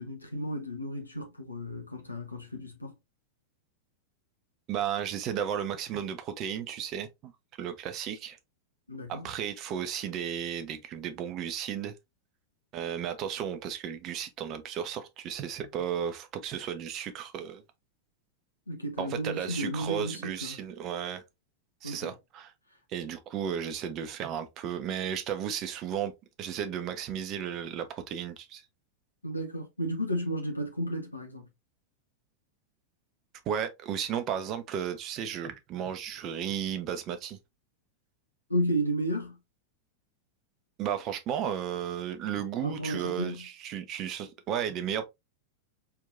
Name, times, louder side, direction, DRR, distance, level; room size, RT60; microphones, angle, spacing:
voice 1, 0.0-2.9 8.9-9.3 18.7-20.6 21.8-22.1 29.2-31.5 38.5-39.4 42.6-43.4, equal, 85° left, 0.9 m, -33 dB
voice 2, 4.7-7.3 7.6-8.4 9.1-11.9 12.7-17.6 19.0-21.2 21.8-22.5 22.9-26.1 26.4-28.6 33.5-37.4 40.8-45.0, right 9 dB, 35° right, 0.8 m, -34 dB
4.6 x 3.4 x 2.5 m
figure-of-eight pair, 90°, 0 cm